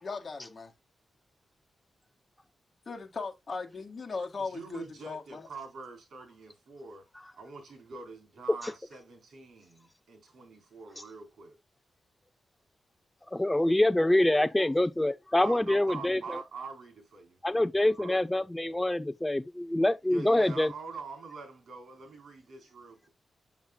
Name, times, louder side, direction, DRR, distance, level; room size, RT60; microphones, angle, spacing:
voice 1, 0.0-0.7 2.9-5.5, left 4 dB, 40° left, 1.9 m, -38 dB
voice 2, 4.4-7.1 7.3-11.6 15.4-17.4 17.7-18.2 20.1-23.1, right 4 dB, 70° right, 3.8 m, -44 dB
voice 3, 13.3-16.4 17.4-20.7, left 1 dB, 10° left, 0.5 m, -26 dB
7.2 x 7.2 x 2.3 m
wide cardioid pair, 115°, 0 cm